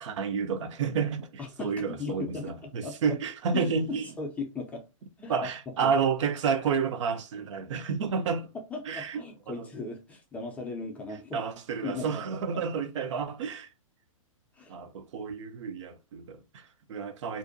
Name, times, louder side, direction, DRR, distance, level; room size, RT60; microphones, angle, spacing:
voice 1, 0.0-4.1 5.3-8.5 8.9-9.2 9.5-9.7 11.3-13.7 14.7-17.4, right 6 dB, 60° right, 0.4 m, -30 dB
voice 2, 1.4-3.0 3.5-4.8 5.2-5.4 5.8-5.9 8.7-11.4 11.8-12.1 12.5-12.6 14.5-14.8, left 3 dB, 10° left, 0.4 m, -37 dB
2.5 x 2.1 x 2.5 m
hypercardioid pair, 135°, 17 cm